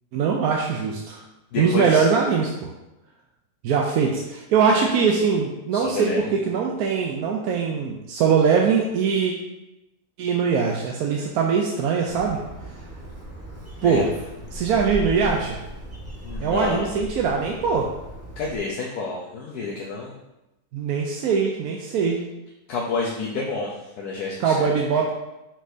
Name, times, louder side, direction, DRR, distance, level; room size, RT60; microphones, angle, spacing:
voice 1, 0.1-1.2 1.6-2.5 3.6-9.3 10.2-12.4 13.8-14.1 14.5-15.6 16.4-17.9 20.7-22.2 24.4-25.1, right 6 dB, 80° right, 0 dB, 1.1 m, -22 dB
voice 2, 1.5-2.0 4.7-4.9 5.7-6.2 13.8-14.0 14.7-14.8 15.2-15.4 16.2-16.9 18.4-20.1 22.7-23.7 24.0-24.7, left 4 dB, 85° left, -4 dB, 1.4 m, -29 dB
Bird, 12.1-18.6, right 1 dB, 10° right, 1.3 m, -37 dB
6.2 x 6.0 x 2.7 m, 0.96 s
omnidirectional pair, 1.6 m